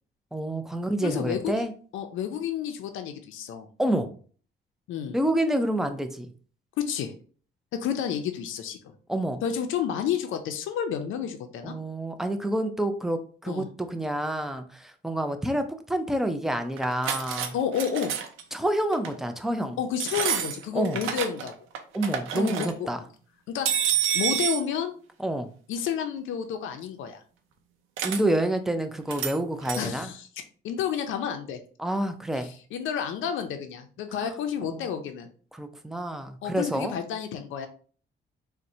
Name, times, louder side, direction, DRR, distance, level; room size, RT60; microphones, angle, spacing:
voice 1, 0.3-1.7 3.8-4.1 5.1-6.3 9.1-9.4 11.6-17.5 18.5-19.8 20.7-21.0 21.9-23.0 25.2-25.5 28.0-30.1 31.8-32.5 34.2-34.3 34.6-34.8 35.5-36.9, right 1 dB, ahead, 8 dB, 0.4 m, -28 dB
voice 2, 1.0-1.5 1.9-3.7 4.9-5.2 6.8-7.1 7.8-8.9 9.4-11.7 13.5-13.7 17.5-18.1 19.8-21.5 22.3-22.9 23.5-24.9 25.7-27.2 29.8-30.3 30.6-31.6 32.4-35.3 36.4-37.7, left 8 dB, 80° left, 7 dB, 0.5 m, -30 dB
sound 1, 16.8-17.5 17.7-18.4 18.9-19.2 20.0-21.5 21.7-22.7 23.6-24.6 28.0-28.2 29.1-29.4 29.6-29.9, right 9 dB, 85° right, 0.5 m, -28 dB
4.1 x 2.1 x 2.6 m, 0.42 s
cardioid pair, 90°, 20 cm